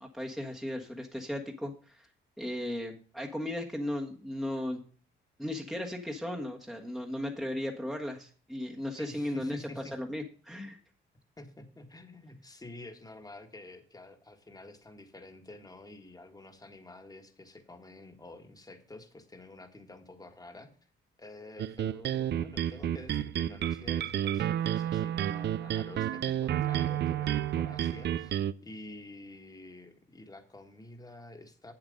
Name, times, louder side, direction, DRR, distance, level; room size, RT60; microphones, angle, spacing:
voice 1, 0.0-2.1 2.4-4.8 5.4-10.8, left 1 dB, ahead, 0 dB, 1.3 m, -36 dB
voice 2, 9.0-10.0 11.4-20.7 21.2-31.7, left 2 dB, 20° left, 7 dB, 1.7 m, -49 dB
sound 1, 21.6-28.5, right 11 dB, 60° right, 0.5 m, -31 dB
8.0 x 7.5 x 5.2 m, 0.42 s
cardioid pair, 90°, 20 cm